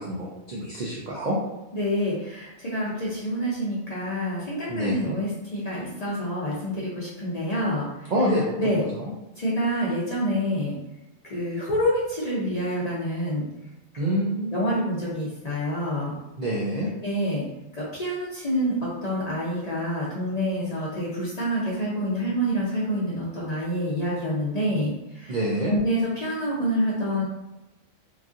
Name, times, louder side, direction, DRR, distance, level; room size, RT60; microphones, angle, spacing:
voice 1, 0.0-1.4 4.7-5.2 8.1-9.0 14.0-14.6 16.4-16.9 25.3-25.8, equal, 85° right, -4 dB, 0.4 m, -27 dB
voice 2, 1.7-8.1 8.6-8.8 9.4-10.8 11.2-13.5 14.0-14.1 14.5-16.2 17.0-17.4 17.7-25.4 25.7-27.2, equal, 50° left, -7 dB, 0.5 m, -27 dB
3.1 x 2.5 x 2.4 m, 0.98 s
omnidirectional pair, 1.4 m